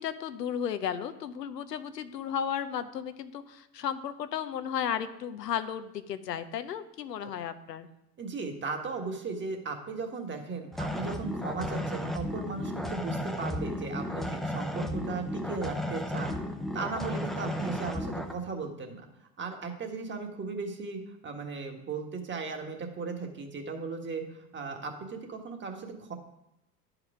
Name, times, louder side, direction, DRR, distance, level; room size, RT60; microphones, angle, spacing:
voice 1, 0.0-7.9, left 8 dB, 85° left, 11 dB, 0.8 m, -34 dB
voice 2, 8.2-16.3 16.7-19.1 19.4-26.1, right 4 dB, 25° right, 4 dB, 1.6 m, -37 dB
sound 1, 10.7-18.3, left 1 dB, ahead, 0.8 m, -34 dB
11.0 x 4.9 x 4.9 m, 0.84 s
hypercardioid pair, 90°, 48 cm